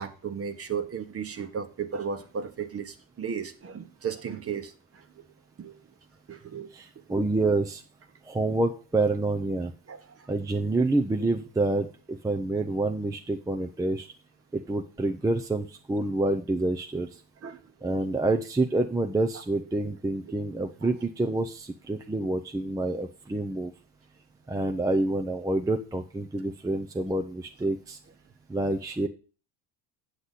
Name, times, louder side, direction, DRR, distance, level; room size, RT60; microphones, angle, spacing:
voice 1, 0.0-5.0 5.6-5.8 6.3-6.7 9.9-10.3 17.4-17.6, right 7 dB, 30° right, 10 dB, 1.2 m, -35 dB
voice 2, 6.7-7.8 8.2-9.7 10.3-14.1 14.5-17.2 17.8-23.7 24.5-28.0 28.5-29.1, right 2 dB, 10° right, 3 dB, 0.6 m, -27 dB
8.3 x 8.0 x 4.0 m, 0.35 s
cardioid pair, 105°, 44 cm